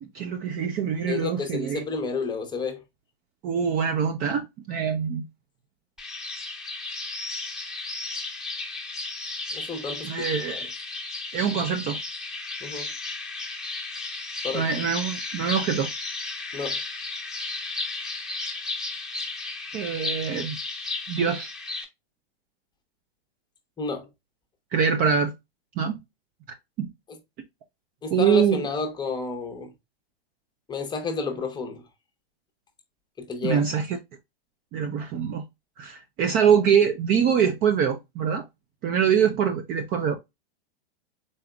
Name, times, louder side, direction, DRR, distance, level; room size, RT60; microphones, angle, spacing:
voice 1, 0.0-1.8 3.4-5.2 10.0-10.7 11.3-12.0 14.5-15.9 19.7-20.6 21.1-21.5 24.7-25.3 25.8-26.0 26.8-26.9 28.1-28.6 33.4-34.0 34.7-35.4 35.8-38.5 38.8-40.2, right 7 dB, 30° right, 0.5 m, -24 dB
voice 2, 1.1-2.8 9.5-10.6 12.6-12.9 14.4-14.7 16.5-16.8 23.8-24.1 28.0-29.7 30.7-31.8 33.2-33.6, left 4 dB, 15° left, 0.9 m, -31 dB
sound 1, 6.0-21.8, left 3 dB, ahead, 1.2 m, -34 dB
4.0 x 3.4 x 2.3 m
hypercardioid pair, 135°, 31 cm